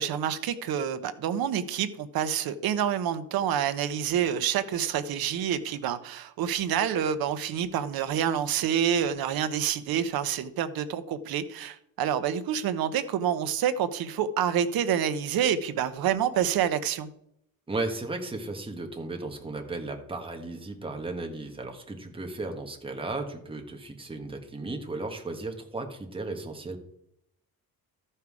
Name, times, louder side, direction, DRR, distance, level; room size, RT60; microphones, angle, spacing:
voice 1, 0.0-17.1, right 9 dB, 75° right, 0.9 m, -27 dB
voice 2, 17.7-26.8, right 2 dB, 15° right, 1.3 m, -35 dB
13.5 x 5.6 x 4.8 m
cardioid pair, 155°, 37 cm